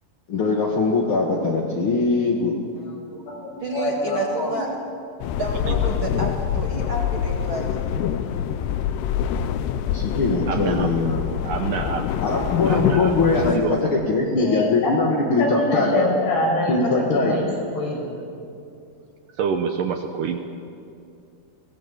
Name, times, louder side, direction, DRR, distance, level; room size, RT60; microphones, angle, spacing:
voice 1, 0.3-2.5 9.9-11.2 12.2-16.1 16.7-17.4, left 3 dB, 50° left, -1 dB, 1.7 m, -21 dB
voice 2, 2.8-4.7 14.4-14.9 15.4-17.5 17.7-18.1, left 2 dB, 75° left, -1 dB, 7.5 m, -25 dB
voice 3, 3.6-4.7 5.3-7.8 13.5-13.6, right 2 dB, 40° right, -1 dB, 2.4 m, -30 dB
sound 1, 5.2-13.6, left 9 dB, 90° left, 3.0 m, -25 dB
voice 4, 5.7-6.0 8.2-8.3 10.5-10.9 11.4-12.1 12.7-13.1 13.5-13.9 19.4-20.4, right 7 dB, 70° right, 5 dB, 2.2 m, -27 dB
24.0 x 19.0 x 7.0 m, 2.5 s
omnidirectional pair, 4.7 m